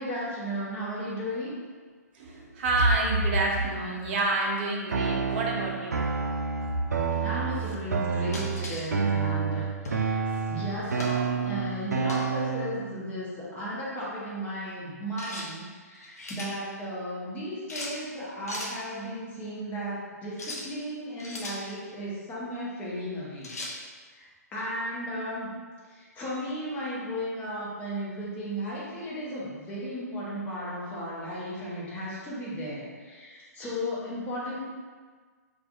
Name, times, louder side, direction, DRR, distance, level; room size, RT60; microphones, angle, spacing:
voice 1, 0.0-1.6 7.2-10.2 10.5-23.5 24.1-24.2 24.5-25.5 25.9-34.6, equal, 15° left, -7 dB, 0.9 m, -35 dB
voice 2, 2.1-6.1 6.6-6.7 7.0-7.1 10.2-10.4, right 2 dB, 40° right, -1 dB, 0.7 m, -27 dB
sound 1, 4.9-12.9, right 5 dB, 75° right, 0.3 m, -29 dB
sound 2, 8.3-8.9 9.8-10.1 11.0-11.2 12.1-12.4 15.2-15.5 16.0-16.5 17.7-18.0 18.5-18.8 20.3-20.7 21.2-21.6 23.4-23.8, left 2 dB, 65° left, 0.7 m, -37 dB
4.5 x 2.4 x 2.5 m, 1.5 s
figure-of-eight pair, 120°, 9 cm